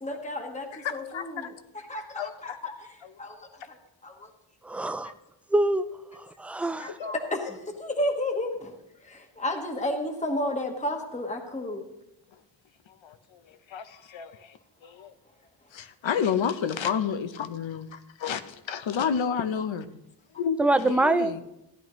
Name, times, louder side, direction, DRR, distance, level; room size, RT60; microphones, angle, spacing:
voice 1, 0.0-4.3 6.8-11.8, left 1 dB, 15° left, 3 dB, 1.2 m, -33 dB
voice 2, 0.8-1.5 2.2-2.6 5.0-5.1 7.0-7.1 13.0-15.1 15.7-20.0 20.4-21.4, left 7 dB, 75° left, 11 dB, 0.9 m, -31 dB
voice 3, 4.6-5.1 5.5-5.8 6.1-7.0 20.6-21.3, right 2 dB, 5° right, 10 dB, 0.3 m, -24 dB
15.5 x 10.5 x 3.1 m, 0.88 s
wide cardioid pair, 125°, 46 cm